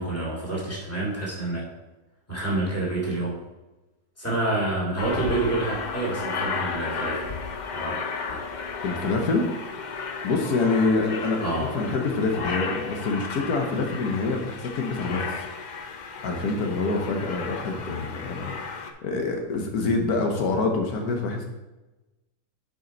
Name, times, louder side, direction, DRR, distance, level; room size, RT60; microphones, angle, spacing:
voice 1, 0.0-1.7 2.3-3.4 4.2-7.3 7.7-8.0 8.3-8.4 11.4-11.7, right 2 dB, 10° left, -6 dB, 2.1 m, -28 dB
Aircraft, 5.0-18.9, left 5 dB, 55° left, 0.5 m, -34 dB
voice 2, 8.8-9.5 10.2-15.3 16.2-21.4, left 3 dB, 85° left, 3 dB, 1.5 m, -26 dB
7.6 x 5.3 x 4.0 m, 1.1 s
omnidirectional pair, 1.6 m